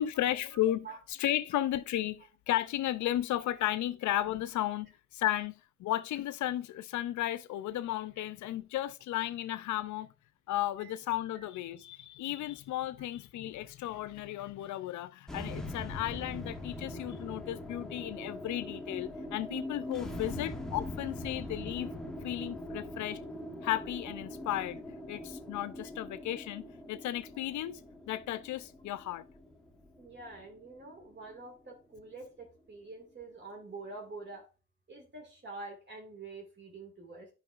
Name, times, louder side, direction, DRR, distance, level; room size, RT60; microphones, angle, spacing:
voice 1, 0.0-5.5 5.8-10.1 10.5-21.9 22.2-23.2 23.6-24.8 25.1-27.8 28.1-29.2, left 13 dB, 75° left, 0.5 m, -34 dB
sound 1, 15.3-31.7, left 1 dB, ahead, 1.1 m, -42 dB
voice 2, 30.0-34.4 34.9-37.3, right 3 dB, 35° right, 2.0 m, -46 dB
8.9 x 5.3 x 2.4 m
cardioid pair, 90°, 30 cm